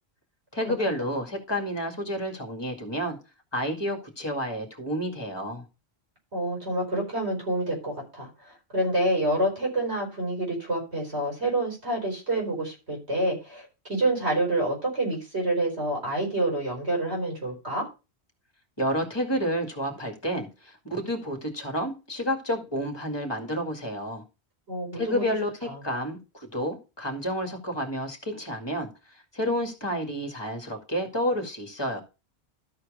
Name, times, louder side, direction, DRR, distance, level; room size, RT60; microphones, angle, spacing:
voice 1, 0.5-3.2 3.5-5.6 18.8-24.2 24.9-28.9 29.3-32.0, equal, 25° left, 2.2 m, -30 dB
voice 2, 6.3-17.9 24.7-25.3 25.7-25.8, right 1 dB, 80° right, 4.6 m, -28 dB
13.0 x 4.5 x 5.0 m
omnidirectional pair, 1.1 m